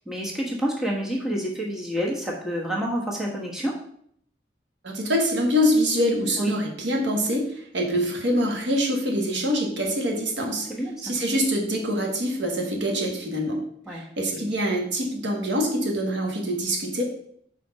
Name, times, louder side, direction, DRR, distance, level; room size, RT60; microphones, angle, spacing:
voice 1, 0.1-3.7 6.4-6.5 10.7-11.1 13.9-14.0, equal, 5° right, -4 dB, 1.2 m, -28 dB
voice 2, 4.8-10.7 11.0-13.6 13.9-17.0, equal, 85° right, 1 dB, 1.5 m, -25 dB
5.1 x 4.2 x 5.4 m, 0.66 s
head